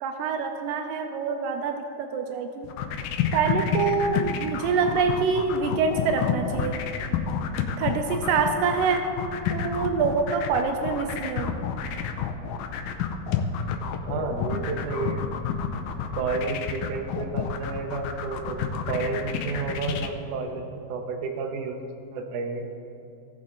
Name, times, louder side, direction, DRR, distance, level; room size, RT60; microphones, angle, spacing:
voice 1, 0.0-2.7 3.3-6.8 7.8-9.0 9.5-11.6, right 5 dB, 90° right, 5 dB, 2.0 m, -26 dB
sound 1, 2.6-20.1, left 8 dB, 80° left, 2.2 m, -29 dB
voice 2, 14.1-15.2 16.2-21.8 22.1-22.6, right 4 dB, 75° right, 3 dB, 2.0 m, -31 dB
17.5 x 6.5 x 3.7 m, 2.8 s
omnidirectional pair, 4.5 m